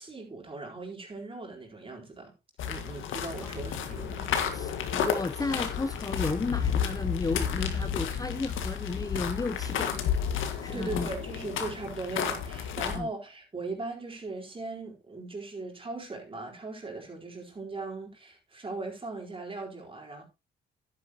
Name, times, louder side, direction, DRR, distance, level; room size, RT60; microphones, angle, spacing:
voice 1, 0.0-2.3 2.7-4.3 10.5-20.2, right 3 dB, 25° right, 4.2 m, -39 dB
sound 1, 2.6-13.0, left 7 dB, 80° left, 1.8 m, -31 dB
voice 2, 4.2-10.0 10.6-11.1 12.9-13.1, left 3 dB, 20° left, 0.7 m, -33 dB
11.0 x 9.8 x 3.0 m
cardioid pair, 90°, 20 cm